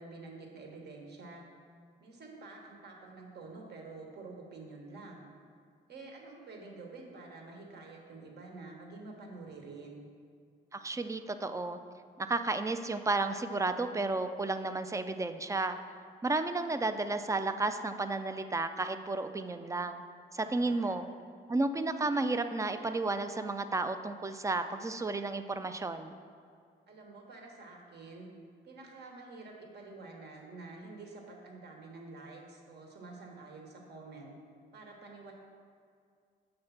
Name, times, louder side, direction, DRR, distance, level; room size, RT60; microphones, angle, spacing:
voice 1, 0.0-1.5 2.0-5.3 5.9-10.1 20.5-21.0 26.9-28.3 28.6-34.3 34.7-35.3, right 3 dB, 55° right, 1 dB, 1.2 m, -48 dB
voice 2, 10.7-11.8 12.2-15.8 16.2-20.0 20.3-21.1 21.5-26.1, right 3 dB, 15° right, 9 dB, 0.3 m, -32 dB
6.9 x 3.2 x 5.7 m, 2.3 s
cardioid pair, 90°, 20 cm